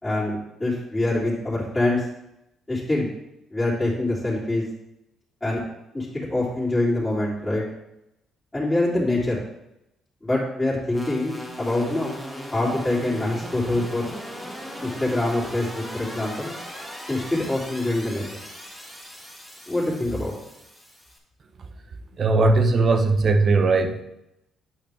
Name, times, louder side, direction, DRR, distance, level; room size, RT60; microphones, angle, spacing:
voice 1, 0.0-2.1 2.7-3.1 3.5-4.7 5.4-5.6 5.9-7.6 8.5-9.4 10.2-12.1 12.5-14.1 14.8-16.5 17.1-18.2 19.7-20.3, left 2 dB, 15° left, -9 dB, 3.1 m, -25 dB
sound 1, 10.9-21.2, equal, 5° right, 2.2 m, -38 dB
voice 2, 22.2-24.0, right 3 dB, 45° right, 6 dB, 0.9 m, -19 dB
8.9 x 5.8 x 3.5 m, 0.86 s
supercardioid pair, 75°, 0 cm